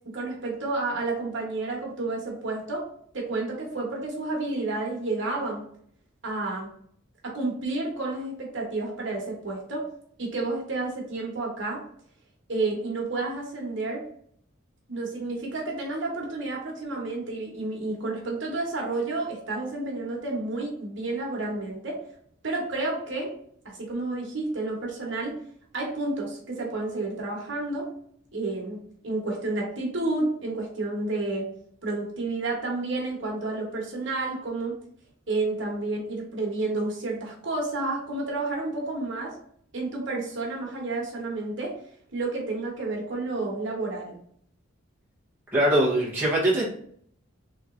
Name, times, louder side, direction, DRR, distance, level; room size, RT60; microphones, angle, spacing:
voice 1, 0.0-2.8 3.1-5.6 6.2-6.7 7.2-9.9 10.2-11.8 12.5-14.0 14.9-22.0 22.4-23.3 23.6-25.4 25.7-27.9 28.3-28.8 29.0-31.5 31.8-34.8 35.3-39.3 39.7-41.7 42.1-44.1, right 2 dB, 60° right, -2 dB, 1.2 m, -30 dB
voice 2, 45.5-46.7, right 1 dB, 10° right, -6 dB, 0.9 m, -22 dB
3.7 x 3.0 x 2.5 m, 0.63 s
head